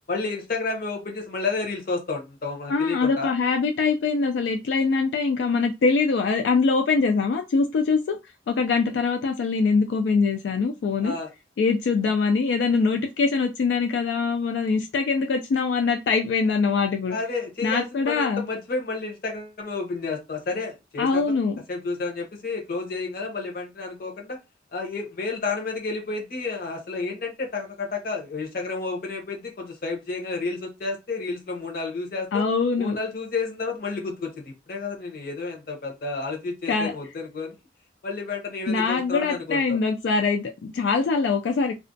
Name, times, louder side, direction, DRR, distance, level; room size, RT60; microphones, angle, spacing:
voice 1, 0.1-3.3 11.0-11.3 17.1-21.3 21.7-24.4 24.7-32.5 32.8-37.5 38.0-39.8, left 3 dB, 55° left, 0.8 m, -31 dB
voice 2, 2.7-8.2 8.5-11.2 11.6-17.2 17.6-18.4 21.0-21.6 32.3-33.0 36.7-36.9 38.7-41.7, left 4 dB, 75° left, 0.3 m, -23 dB
2.3 x 2.1 x 2.5 m
head